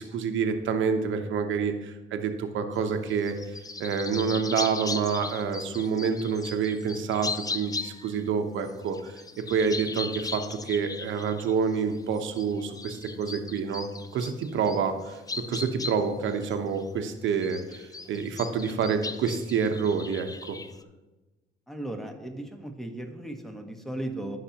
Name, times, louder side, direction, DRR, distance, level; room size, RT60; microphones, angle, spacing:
voice 1, 0.0-3.4 3.8-9.2 9.5-13.9 14.1-20.6, right 6 dB, 75° right, 6 dB, 1.0 m, -28 dB
sound 1, 2.7-8.2 8.6-17.0 17.3-20.8, left 4 dB, 20° left, 0.4 m, -38 dB
voice 2, 21.7-24.4, right 1 dB, ahead, 4 dB, 1.3 m, -36 dB
15.0 x 5.9 x 2.9 m, 1.1 s
cardioid pair, 90°, 20 cm